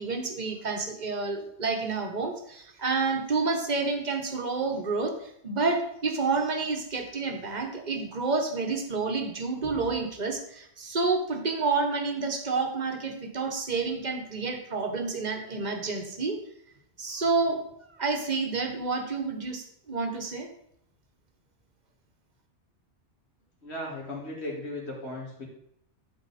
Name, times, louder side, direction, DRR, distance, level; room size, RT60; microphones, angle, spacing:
voice 1, 0.0-16.4 17.0-17.6 18.0-20.5, right 4 dB, 40° right, 4 dB, 1.2 m, -29 dB
voice 2, 23.6-25.5, left 1 dB, 65° left, -3 dB, 2.6 m, -36 dB
11.0 x 4.5 x 4.2 m, 0.72 s
omnidirectional pair, 1.2 m